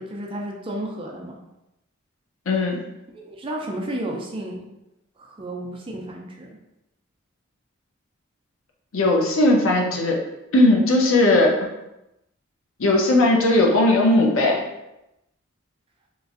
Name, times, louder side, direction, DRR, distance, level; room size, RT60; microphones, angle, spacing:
voice 1, 0.0-1.4 3.1-4.6 5.2-6.5 9.0-9.1, right 1 dB, 25° right, 0 dB, 0.4 m, -32 dB
voice 2, 2.5-2.8 8.9-10.2 10.5-11.7 12.8-14.6, left 2 dB, 85° left, 0 dB, 0.6 m, -18 dB
3.0 x 2.5 x 2.4 m, 0.91 s
head